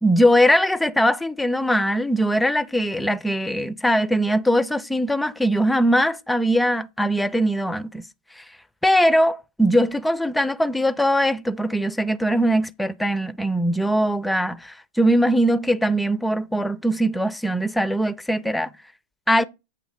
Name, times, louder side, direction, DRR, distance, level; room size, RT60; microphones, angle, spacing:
voice 1, 0.0-8.0 8.4-8.5 8.8-18.7 19.3-19.4, equal, 5° left, 0.4 m, -21 dB
8.4 x 3.0 x 6.3 m
figure-of-eight pair, 90°, 0 cm